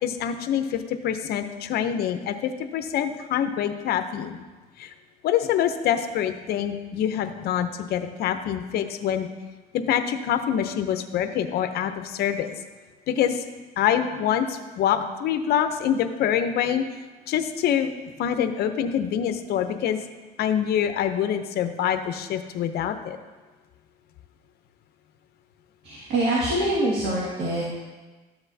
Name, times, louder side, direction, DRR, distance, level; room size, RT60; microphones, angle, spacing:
voice 1, 0.0-4.4 4.8-4.9 5.2-9.3 9.7-12.5 13.1-13.4 13.8-16.9 17.3-17.9 18.2-20.0 20.4-23.2, left 9 dB, 70° left, 8 dB, 0.7 m, -25 dB
voice 2, 25.8-27.8, right 1 dB, 70° right, -6 dB, 2.1 m, -25 dB
12.5 x 7.9 x 2.7 m, 1.3 s
cardioid pair, 110°, 17 cm